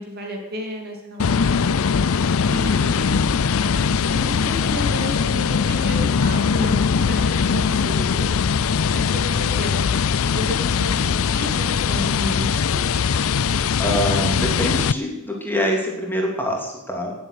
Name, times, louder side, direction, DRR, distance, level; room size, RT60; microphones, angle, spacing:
voice 1, 0.0-1.9 4.0-8.3 8.9-10.0 10.3-12.9, left 1 dB, 45° right, 1 dB, 2.9 m, -32 dB
sound 1, 1.2-14.9, left 6 dB, 65° left, 0.5 m, -21 dB
voice 2, 2.4-3.3 13.8-17.1, equal, 10° left, -1 dB, 3.2 m, -25 dB
19.5 x 7.9 x 8.3 m, 0.97 s
head